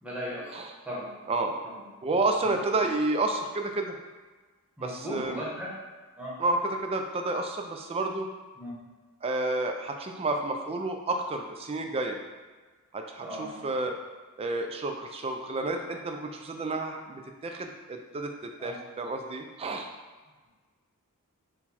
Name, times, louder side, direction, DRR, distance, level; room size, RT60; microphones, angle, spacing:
voice 1, 0.0-0.5 0.9-1.1 2.4-2.5 4.8-5.7 6.2-6.3 8.6-8.7 13.2-13.5 18.6-18.8, equal, 5° right, -7 dB, 0.9 m, -36 dB
voice 2, 1.3-1.6 2.0-3.9 4.8-5.4 6.4-8.3 9.2-12.2 12.9-14.0 14.4-19.9, right 2 dB, 25° right, 4 dB, 0.3 m, -30 dB
4.4 x 2.2 x 4.1 m, 1.3 s
head